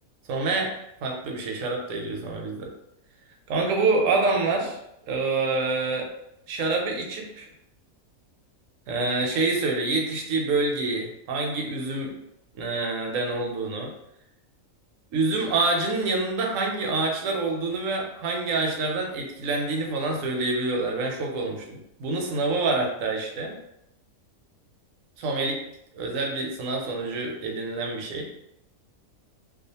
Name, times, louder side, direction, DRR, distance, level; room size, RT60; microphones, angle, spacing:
voice 1, 0.3-0.7 1.0-2.7 3.5-4.8 5.1-6.1 6.5-7.5 8.9-12.1 12.5-13.9 15.1-23.5 25.2-25.6 25.9-28.3, right 3 dB, 70° right, 1 dB, 0.9 m, -26 dB
2.4 x 2.3 x 2.7 m, 0.82 s
omnidirectional pair, 1.5 m